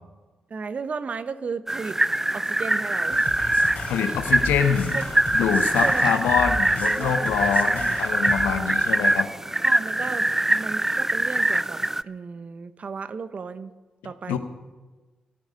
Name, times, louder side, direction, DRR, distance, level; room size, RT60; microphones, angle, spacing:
voice 1, 0.5-2.0 2.3-3.5 4.1-4.2 4.9-5.0 5.8-6.2 7.0-8.0 8.5-8.8 9.6-13.7 14.0-14.4, right 5 dB, 50° right, 13 dB, 1.0 m, -35 dB
sound 1, 1.7-12.0, right 1 dB, 15° right, 0.5 m, -23 dB
sound 2, 3.1-8.5, left 3 dB, 65° left, 3.6 m, -35 dB
voice 2, 3.9-5.0 5.3-9.3 14.3-14.4, left 8 dB, 80° left, 8 dB, 1.1 m, -25 dB
26.0 x 9.3 x 5.2 m, 1.2 s
hypercardioid pair, 45°, 3 cm